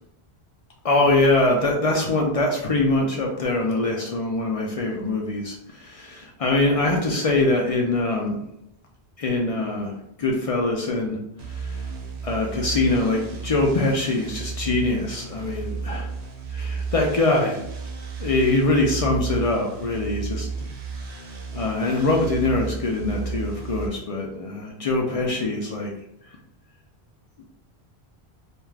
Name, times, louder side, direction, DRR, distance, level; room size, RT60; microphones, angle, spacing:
voice 1, 0.8-8.4 9.2-11.2 11.5-11.8 12.2-16.1 16.5-17.6 18.2-20.5 21.5-25.9, left 2 dB, 60° left, 0 dB, 0.4 m, -23 dB
sound 1, 11.4-23.9, right 4 dB, 55° right, 0.5 m, -33 dB
2.5 x 2.3 x 3.2 m, 0.77 s
omnidirectional pair, 1.1 m